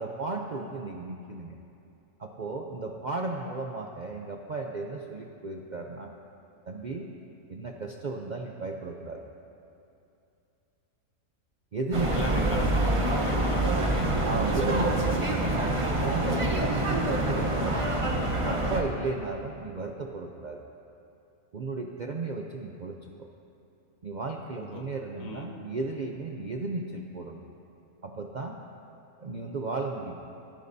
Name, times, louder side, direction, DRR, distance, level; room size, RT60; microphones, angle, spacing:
voice 1, 0.0-1.6 2.2-6.1 6.7-7.1 7.5-9.2 11.7-12.6 14.2-15.5 16.0-16.8 17.0-17.8 18.4-20.6 21.5-23.3 24.0-27.4 28.0-28.6 29.2-30.1, right 3 dB, 50° right, 1 dB, 0.5 m, -34 dB
sound 1, 11.9-18.8, right 1 dB, 25° right, 0.9 m, -26 dB
voice 2, 12.1-14.1 24.6-24.8 25.2-25.6, left 3 dB, 70° left, 2 dB, 1.5 m, -39 dB
19.5 x 14.0 x 2.7 m, 2.7 s
omnidirectional pair, 1.5 m